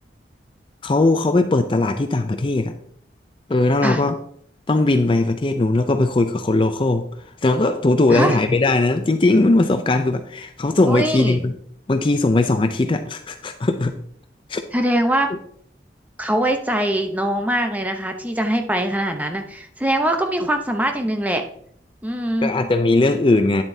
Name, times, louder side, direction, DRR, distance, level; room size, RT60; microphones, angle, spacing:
voice 1, 0.8-2.7 3.5-4.2 4.7-7.1 7.4-11.5 11.9-14.0 14.5-14.6 22.4-23.6, left 2 dB, 30° left, 8 dB, 0.4 m, -19 dB
voice 2, 10.9-11.4 14.7-15.3 16.2-21.5 22.0-22.5, right 1 dB, 10° right, 5 dB, 0.7 m, -22 dB
9.9 x 7.4 x 2.7 m, 0.64 s
head